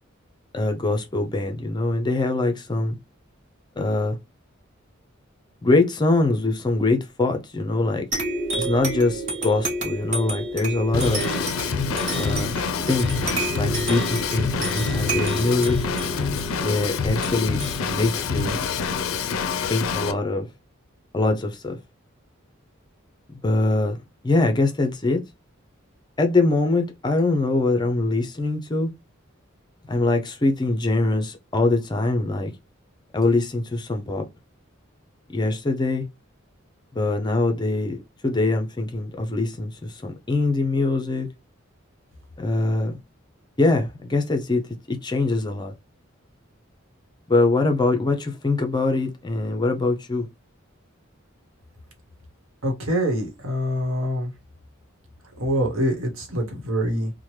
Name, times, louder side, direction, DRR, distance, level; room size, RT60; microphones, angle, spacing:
voice 1, 0.5-3.0 3.8-4.2 5.6-8.1 8.5-11.2 12.1-12.6 12.9-15.8 16.6-18.6 19.7-20.5 21.1-21.8 23.4-24.0 24.2-25.2 26.2-28.9 29.9-32.5 33.1-34.2 35.3-36.1 36.9-41.3 42.4-43.0 43.6-45.7 47.3-50.3, left 2 dB, 20° left, 0.4 m, -23 dB
sound 1, 8.1-19.2, right 2 dB, 35° right, 1.1 m, -30 dB
Drum kit / Drum, 10.9-20.1, left 6 dB, 80° left, 0.4 m, -27 dB
voice 2, 52.6-54.3 55.4-57.1, equal, 75° right, 1.0 m, -25 dB
2.9 x 2.1 x 3.1 m
head